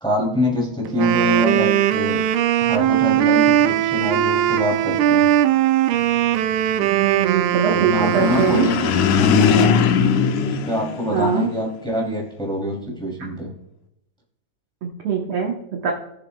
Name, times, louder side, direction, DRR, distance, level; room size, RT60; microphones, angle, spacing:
voice 1, 0.0-2.2 2.6-5.3 7.6-9.7 10.4-13.5, equal, ahead, -2 dB, 2.1 m, -24 dB
Wind instrument woodwind instrument, 0.9-9.0, right 12 dB, 80° right, 1.7 m, -19 dB
voice 2, 6.8-8.7 11.1-11.5 14.8-15.9, right 7 dB, 60° right, 0 dB, 1.5 m, -22 dB
sound 1, 8.0-11.6, left 6 dB, 75° left, 2.2 m, -19 dB
19.5 x 7.0 x 2.3 m, 0.82 s
omnidirectional pair, 3.7 m